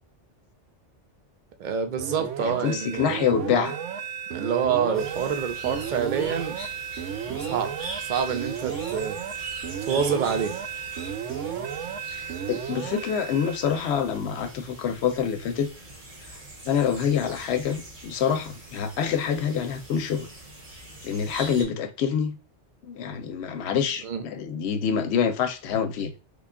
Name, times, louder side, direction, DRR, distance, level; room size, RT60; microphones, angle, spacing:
voice 1, 1.6-3.2 4.3-6.6 7.3-7.7 8.0-9.2 9.8-10.6 24.0-24.2, right 7 dB, 55° right, 0.6 m, -27 dB
sound 1, 2.0-14.1, right 8 dB, 90° right, 0.9 m, -33 dB
voice 2, 2.4-3.7 12.1-15.7 16.7-20.3 21.0-22.4 22.8-26.1, left 7 dB, 70° left, 0.8 m, -26 dB
sound 2, 4.9-21.6, right 1 dB, 35° right, 1.0 m, -43 dB
3.4 x 2.3 x 3.6 m
omnidirectional pair, 1.2 m